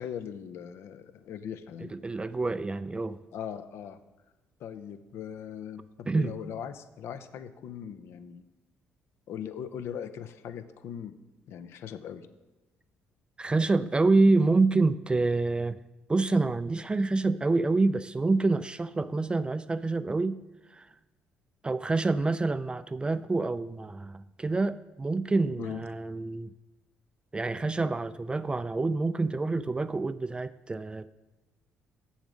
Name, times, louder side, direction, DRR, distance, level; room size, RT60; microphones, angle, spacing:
voice 1, 0.0-1.9 3.3-4.0 4.6-8.4 9.3-11.2 11.4-12.3 25.6-25.8, left 8 dB, 70° left, 11 dB, 0.6 m, -39 dB
voice 2, 1.9-3.2 6.1-6.3 13.4-15.8 16.1-20.4 20.7-20.9 21.6-26.5 27.3-31.1, right 3 dB, 20° right, 14 dB, 0.3 m, -27 dB
7.2 x 7.1 x 5.0 m, 1.1 s
supercardioid pair, 70°, 5 cm